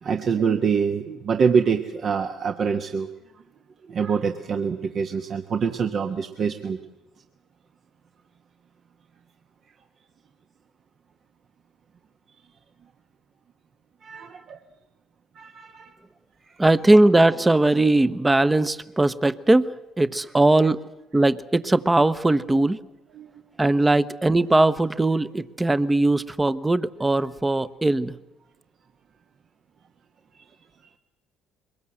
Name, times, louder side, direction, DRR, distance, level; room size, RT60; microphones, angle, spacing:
voice 1, 0.0-3.1 3.9-6.8 14.0-14.6 15.3-15.9 23.2-23.3 30.5-30.6, right 6 dB, 50° right, 5 dB, 1.2 m, -25 dB
voice 2, 16.6-20.8 21.1-22.8 23.6-28.1, right 2 dB, 15° right, 14 dB, 0.9 m, -20 dB
22.5 x 21.0 x 7.9 m, 0.99 s
hypercardioid pair, 60°, 0 cm